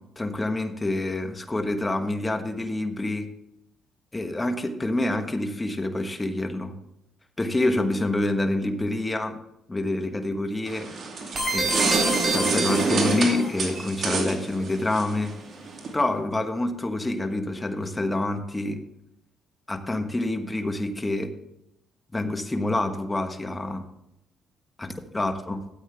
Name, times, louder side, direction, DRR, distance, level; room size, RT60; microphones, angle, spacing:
voice 1, 0.2-3.3 4.1-6.7 7.4-9.4 9.7-10.9 11.5-12.0 12.3-15.3 15.9-18.8 19.7-21.3 22.1-23.8 24.8-25.6, left 2 dB, 15° left, 6 dB, 1.2 m, -27 dB
sound 1, 10.7-15.9, right 3 dB, 55° right, 2.3 m, -27 dB
sound 2, 11.4-13.7, right 2 dB, 30° right, 3.7 m, -28 dB
13.5 x 8.4 x 3.4 m, 0.83 s
cardioid pair, 90°, 0 cm